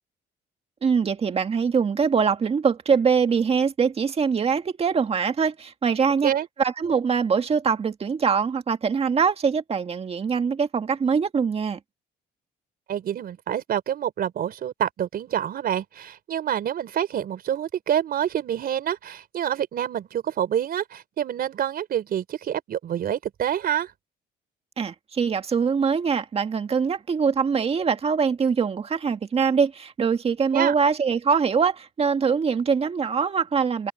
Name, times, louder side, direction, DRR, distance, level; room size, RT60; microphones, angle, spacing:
voice 1, 0.8-6.3 6.6-11.8 24.8-33.9, right 6 dB, 35° right, 1.9 m, -23 dB
voice 2, 12.9-23.9 30.5-30.7, right 10 dB, 55° right, 4.7 m, -27 dB
cardioid pair, 130°, 18 cm